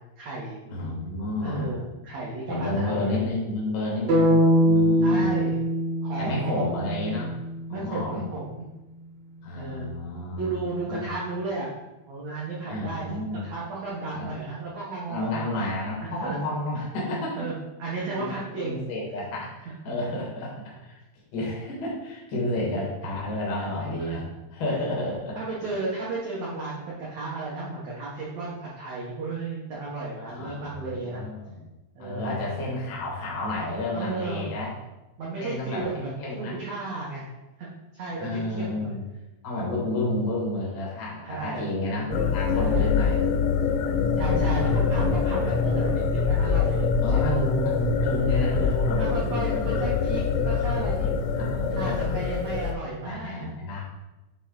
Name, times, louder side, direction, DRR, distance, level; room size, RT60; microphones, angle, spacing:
voice 1, 0.2-0.6 1.4-3.1 5.0-5.6 6.0-6.8 7.7-8.6 9.5-9.9 10.4-11.7 12.1-15.4 16.0-16.5 17.3-18.8 19.7-19.8 23.6-23.7 23.9-24.3 24.7-24.8 25.3-31.2 31.9-32.4 33.9-34.5 35.2-37.2 37.6-37.7 37.9-38.9 41.2-42.9 44.1-47.3 48.3-51.1 51.7-53.5, right 3 dB, 85° right, -6 dB, 1.5 m, -34 dB
voice 2, 0.7-1.7 2.5-4.3 4.6-5.4 6.2-7.3 7.7-8.2 9.4-10.6 10.9-11.1 12.7-13.4 14.1-14.3 15.1-17.5 18.1-18.3 18.6-21.0 21.3-24.2 24.5-25.4 30.2-31.7 32.0-34.7 35.4-36.6 38.2-39.0 39.4-43.2 44.3-44.6 47.0-49.9 51.3-52.0 53.0-53.8, left 1 dB, 75° left, -4 dB, 1.1 m, -31 dB
sound 1, 4.1-8.1, equal, 55° right, 2.2 m, -23 dB
sound 2, 42.1-52.7, left 5 dB, 90° left, 2.8 m, -24 dB
9.1 x 3.4 x 3.8 m, 1.0 s
omnidirectional pair, 4.8 m